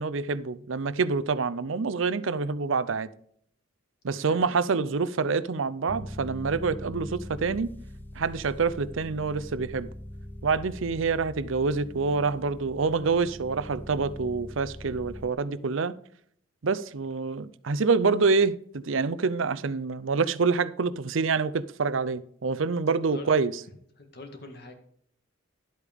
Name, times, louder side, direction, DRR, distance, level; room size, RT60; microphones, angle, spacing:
voice 1, 0.0-3.1 4.0-7.7 8.2-9.9 10.4-16.0 16.6-23.5, right 4 dB, 75° right, 0.6 m, -26 dB
voice 2, 4.1-4.4 22.9-23.4 24.0-24.8, left 2 dB, 55° left, 1.9 m, -45 dB
sound 1, 5.9-15.3, left 1 dB, 10° left, 0.8 m, -42 dB
12.0 x 8.3 x 3.6 m
head